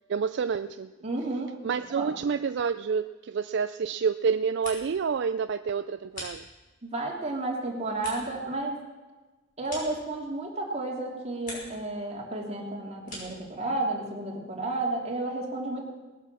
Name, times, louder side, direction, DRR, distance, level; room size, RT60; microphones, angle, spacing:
voice 1, 0.1-0.9 1.6-6.5, right 6 dB, 65° right, 11 dB, 0.4 m, -28 dB
voice 2, 1.0-1.5 2.0-2.1 6.8-8.8 9.6-15.8, right 2 dB, 35° right, -1 dB, 2.9 m, -32 dB
sound 1, 4.3-5.1 5.4-6.9 7.3-10.6 10.9-11.9 12.2-13.5, left 1 dB, 45° left, 6.0 m, -45 dB
19.5 x 8.3 x 7.6 m, 1.2 s
head